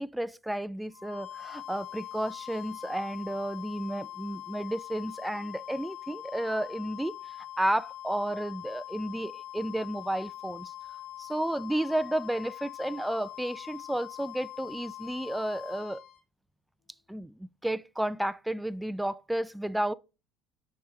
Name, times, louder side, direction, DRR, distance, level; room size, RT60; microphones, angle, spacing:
voice 1, 0.0-10.7 11.2-16.0 17.1-19.9, right 1 dB, 5° right, 0.4 m, -32 dB
sound 1, 0.9-16.2, left 12 dB, 75° left, 3.0 m, -43 dB
7.2 x 4.7 x 3.0 m
supercardioid pair, 110°, 0 cm